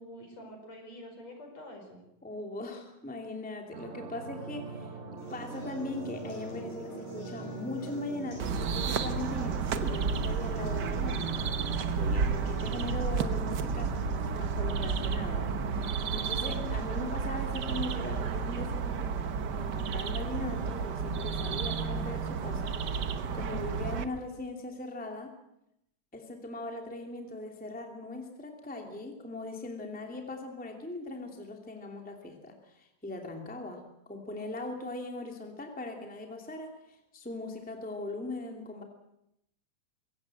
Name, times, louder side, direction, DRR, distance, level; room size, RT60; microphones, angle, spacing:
voice 1, 0.0-2.0, equal, 55° left, 3 dB, 6.0 m, -47 dB
voice 2, 2.2-11.4 11.9-13.9 14.2-19.1 19.5-22.8 23.3-25.3 26.1-38.8, left 2 dB, 5° left, 3 dB, 2.2 m, -40 dB
sound 1, 3.7-15.9, right 1 dB, 70° right, 5.0 m, -41 dB
sound 2, 5.2-13.2, left 1 dB, 80° left, 9.4 m, -49 dB
sound 3, 8.4-24.0, right 6 dB, 90° right, 0.9 m, -32 dB
22.5 x 17.5 x 7.7 m, 0.81 s
omnidirectional pair, 3.6 m